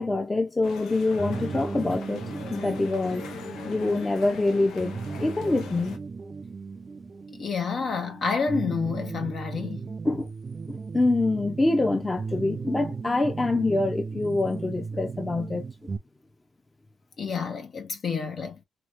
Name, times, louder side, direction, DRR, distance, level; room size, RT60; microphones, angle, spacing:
voice 1, 0.0-3.2 3.6-6.0 10.0-10.3 10.7-15.7, left 2 dB, 20° left, 0.8 m, -25 dB
sound 1, 0.6-6.0, left 6 dB, 80° left, 0.8 m, -41 dB
sound 2, 1.2-16.0, right 4 dB, 35° right, 0.4 m, -36 dB
voice 2, 7.3-9.9 17.2-18.6, left 5 dB, 50° left, 1.0 m, -29 dB
3.0 x 3.0 x 2.6 m
cardioid pair, 90°, 0 cm